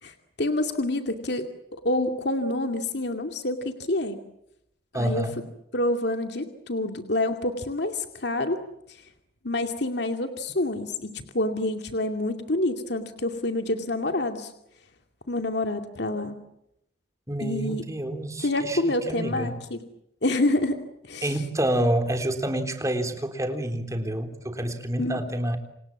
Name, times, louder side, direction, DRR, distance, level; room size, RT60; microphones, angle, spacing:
voice 1, 0.0-4.2 5.0-5.2 5.7-8.6 8.9-9.0 9.4-14.5 15.3-16.4 17.4-17.9 18.4-19.8 20.2-20.8 21.1-21.4 25.0-25.2, left 1 dB, 65° left, 6 dB, 2.4 m, -27 dB
voice 2, 4.9-5.4 17.3-19.5 21.2-25.6, right 1 dB, 15° right, 7 dB, 3.6 m, -28 dB
29.0 x 27.0 x 7.3 m, 0.81 s
head